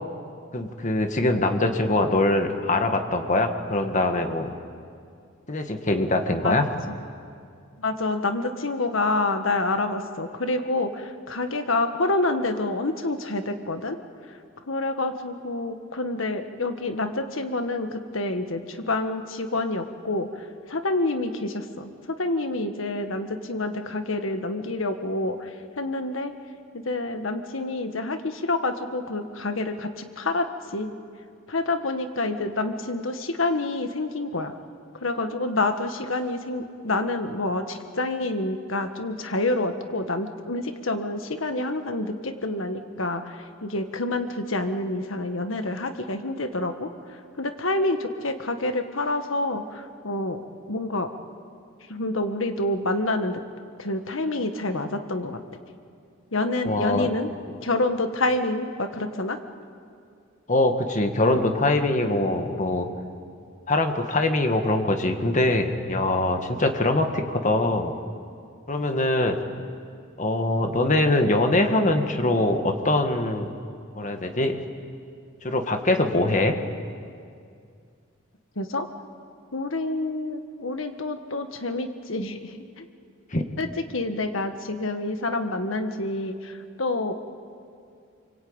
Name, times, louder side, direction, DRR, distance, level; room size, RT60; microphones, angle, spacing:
voice 1, 0.5-4.6 5.5-6.7 56.7-57.1 60.5-62.9 63.7-67.9 68.7-69.4 70.2-73.5 73.9-74.6 75.4-76.6 83.3-83.4, left 2 dB, 40° left, 5 dB, 1.9 m, -23 dB
voice 2, 7.8-14.0 14.7-26.3 26.7-30.9 31.5-34.5 35.0-50.4 50.7-51.1 51.9-53.4 53.8-55.4 56.3-59.4 61.2-61.4 78.6-78.9 79.5-82.9 83.6-87.1, left 2 dB, 80° left, 7 dB, 1.6 m, -28 dB
27.0 x 24.0 x 8.9 m, 2.3 s
head